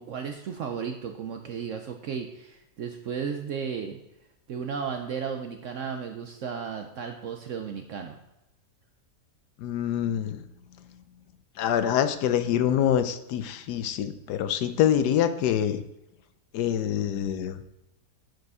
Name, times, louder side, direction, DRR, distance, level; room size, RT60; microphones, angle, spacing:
voice 1, 0.0-4.0 4.5-8.2, right 6 dB, 70° right, 5 dB, 0.8 m, -34 dB
voice 2, 9.6-10.4 11.6-15.8 16.5-17.6, left 10 dB, 75° left, 11 dB, 1.2 m, -25 dB
8.9 x 4.9 x 4.8 m, 0.89 s
omnidirectional pair, 1.8 m